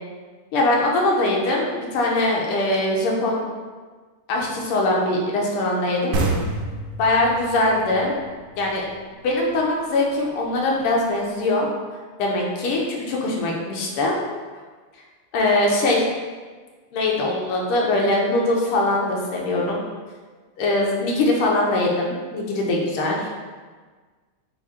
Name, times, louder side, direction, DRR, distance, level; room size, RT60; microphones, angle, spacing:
voice 1, 0.5-3.4 4.3-6.2 7.0-8.1 8.6-8.8 9.2-11.7 12.2-14.2 15.3-16.0 16.9-19.8 20.6-23.3, left 2 dB, 85° left, -2 dB, 1.7 m, -22 dB
sound 1, 6.1-9.5, right 2 dB, 85° right, 0.8 m, -28 dB
4.9 x 2.4 x 4.2 m, 1.4 s
omnidirectional pair, 2.4 m